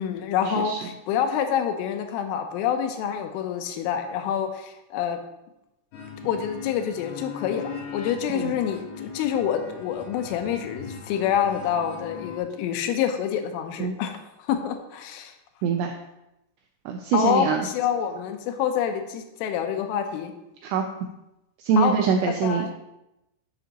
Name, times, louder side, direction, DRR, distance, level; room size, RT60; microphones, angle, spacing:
voice 1, 0.0-5.2 6.2-15.3 17.1-20.3 21.8-22.0 22.4-22.7, left 8 dB, 90° left, 6 dB, 3.3 m, -27 dB
sound 1, 5.9-12.4, left 6 dB, 70° left, 2.1 m, -39 dB
voice 2, 15.6-16.0 16.9-17.7 20.6-20.9 21.6-22.7, right 6 dB, 85° right, 4 dB, 2.4 m, -23 dB
11.0 x 6.7 x 2.9 m, 0.90 s
omnidirectional pair, 5.6 m